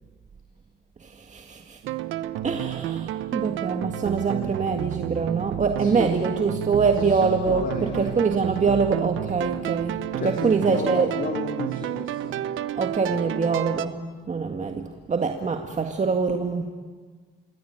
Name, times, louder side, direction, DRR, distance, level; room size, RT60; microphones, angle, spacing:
voice 1, 1.0-1.8 2.4-10.0 10.4-11.1 12.7-14.0 14.3-16.7, right 5 dB, 35° right, 4 dB, 1.9 m, -24 dB
sound 1, 1.8-13.9, right 13 dB, 90° right, 1.0 m, -31 dB
voice 2, 3.3-3.6 5.8-6.1 6.9-8.2 10.2-12.4 13.0-13.3, left 4 dB, 45° left, 3 dB, 3.0 m, -34 dB
27.5 x 24.0 x 8.9 m, 1.5 s
cardioid pair, 90°, 20 cm